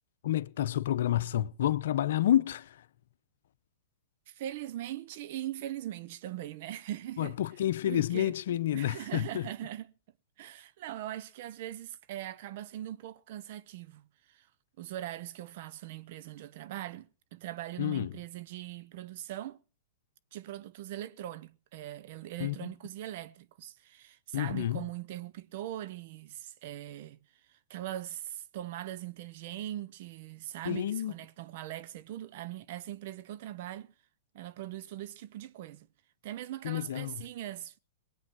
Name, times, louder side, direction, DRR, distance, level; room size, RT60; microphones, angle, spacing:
voice 1, 0.2-2.9 7.2-9.5 17.8-18.1 22.4-22.7 24.3-24.9 30.6-31.1 36.6-37.3, left 12 dB, 70° left, 0.8 m, -29 dB
voice 2, 4.3-7.4 7.9-8.3 8.7-9.9 10.4-14.5 14.8-19.6 20.3-27.2 27.5-33.9 34.3-35.9 36.2-37.8, right 13 dB, 60° right, 0.8 m, -41 dB
19.5 x 8.4 x 6.2 m
hypercardioid pair, 130°, 0 cm